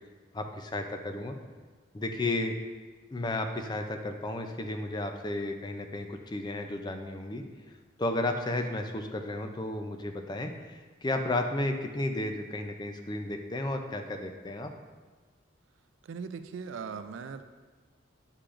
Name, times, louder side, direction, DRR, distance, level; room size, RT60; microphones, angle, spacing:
voice 1, 0.3-1.4 1.9-2.6 3.1-7.4 8.0-14.7, left 2 dB, 25° left, 5 dB, 0.4 m, -33 dB
voice 2, 16.0-17.4, right 5 dB, 85° right, 10 dB, 0.4 m, -39 dB
8.5 x 4.8 x 2.5 m, 1.4 s
head